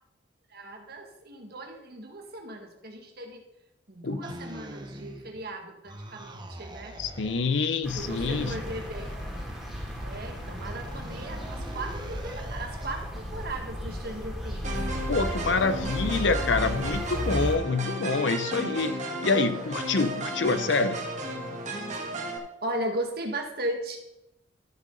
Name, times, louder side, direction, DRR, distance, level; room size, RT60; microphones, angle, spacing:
voice 1, 0.5-3.4 3.9-7.0 7.9-9.1 10.0-14.8 22.6-24.0, right 1 dB, 55° right, 3 dB, 1.7 m, -37 dB
voice 2, 4.0-4.3 7.0-8.6 15.1-21.0, left 4 dB, 70° left, 11 dB, 0.7 m, -26 dB
sound 1, 4.2-5.5 5.9-7.5 7.9-13.1, right 1 dB, 25° right, 0.9 m, -43 dB
sound 2, 7.8-17.6, equal, ahead, 2.5 m, -35 dB
sound 3, 14.6-22.4, right 1 dB, 40° right, 1.5 m, -34 dB
13.0 x 6.4 x 3.9 m, 0.84 s
head